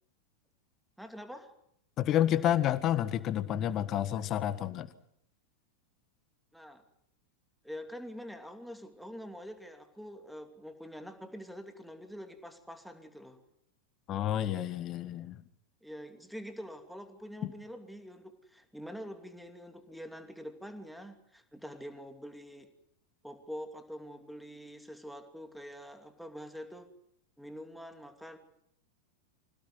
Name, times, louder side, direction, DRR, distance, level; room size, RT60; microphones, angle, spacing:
voice 1, 1.0-1.5 6.5-6.8 7.6-13.4 15.8-22.7 23.2-26.9 27.4-28.4, equal, ahead, 7 dB, 2.8 m, -45 dB
voice 2, 2.0-4.9 14.1-15.4 17.4-17.5, left 11 dB, 35° left, 14 dB, 1.5 m, -29 dB
26.5 x 17.0 x 9.5 m, 0.72 s
figure-of-eight pair, 90°, 0 cm